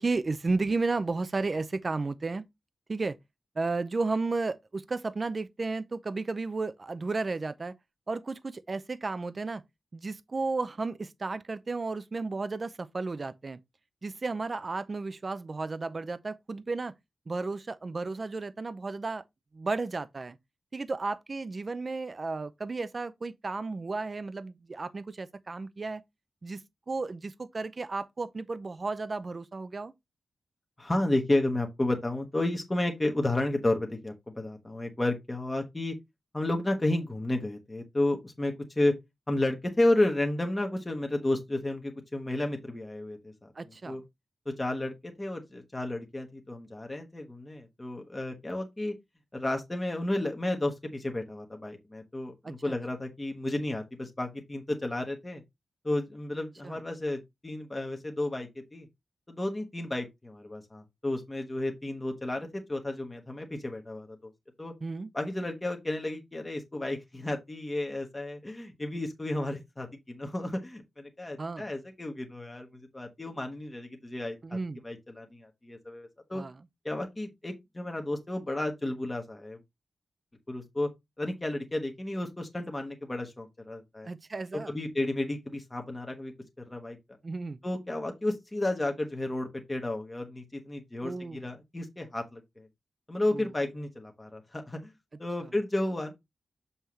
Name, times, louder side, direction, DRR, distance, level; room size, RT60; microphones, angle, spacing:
voice 1, 0.0-2.4 2.9-3.2 3.6-7.7 8.1-9.6 9.9-13.6 14.0-16.9 17.3-19.2 19.5-20.4 20.7-26.0 26.4-29.9 43.6-44.0 52.4-52.5 56.6-56.7 64.8-65.1 71.4-71.7 74.4-74.8 76.3-76.5 84.0-84.7 87.2-87.6 91.0-91.4 93.3-93.5, right 3 dB, 30° right, 0.5 m, -33 dB
voice 2, 30.8-35.9 36.3-38.9 39.3-44.0 44.4-48.9 49.3-55.4 55.8-58.9 59.3-64.3 64.6-64.7 65.1-74.6 74.8-76.4 76.8-79.6 80.5-80.9 81.2-84.1 84.7-86.3 86.7-87.0 87.6-92.7 93.1-94.9 95.2-96.1, left 1 dB, 15° left, 1.1 m, -32 dB
7.2 x 5.6 x 3.1 m
wide cardioid pair, 170°, 0 cm